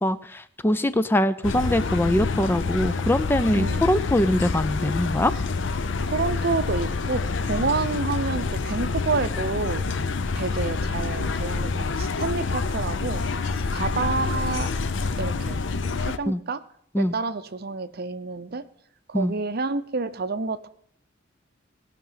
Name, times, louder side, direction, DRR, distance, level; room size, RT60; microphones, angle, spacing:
voice 1, 0.0-5.3 16.3-16.4 16.9-17.1 19.1-19.3, left 1 dB, 10° left, 13 dB, 0.4 m, -23 dB
sound 1, 1.4-16.2, left 4 dB, 70° left, 0.6 m, -27 dB
voice 2, 3.5-3.9 6.1-9.9 10.3-13.2 13.7-14.7 15.2-15.7 16.0-16.6 17.0-18.6 19.1-20.7, right 4 dB, 55° right, 12 dB, 0.7 m, -29 dB
17.5 x 6.0 x 5.6 m, 0.66 s
head